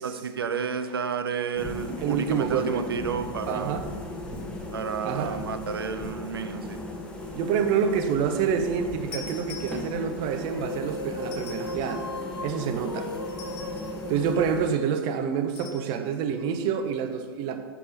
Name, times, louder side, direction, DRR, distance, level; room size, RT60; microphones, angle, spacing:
voice 1, 0.0-3.8 4.7-6.8, right 6 dB, 75° right, 8 dB, 0.6 m, -31 dB
sound 1, 1.6-14.7, left 1 dB, 5° left, 1.2 m, -37 dB
voice 2, 2.0-2.9 3.5-3.9 5.0-5.3 7.3-12.0 12.4-13.1 14.1-17.6, right 7 dB, 40° right, 7 dB, 0.8 m, -27 dB
sound 2, 9.1-10.3 11.2-12.1 13.3-14.0 15.6-16.0, left 6 dB, 40° left, 1.8 m, -44 dB
sound 3, 10.4-15.2, left 2 dB, 90° left, 0.6 m, -37 dB
9.5 x 6.1 x 2.9 m, 1.5 s
figure-of-eight pair, 95°, 13 cm